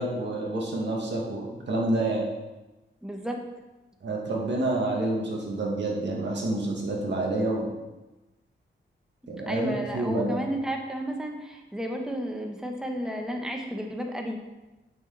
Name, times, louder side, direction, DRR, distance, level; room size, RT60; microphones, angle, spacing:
voice 1, 0.0-2.2 4.0-7.7 9.3-10.5, right 2 dB, 60° right, -2 dB, 2.1 m, -28 dB
voice 2, 3.0-3.4 9.5-14.4, equal, 5° right, 2 dB, 1.1 m, -32 dB
8.6 x 6.3 x 4.0 m, 1.1 s
wide cardioid pair, 105°, 20 cm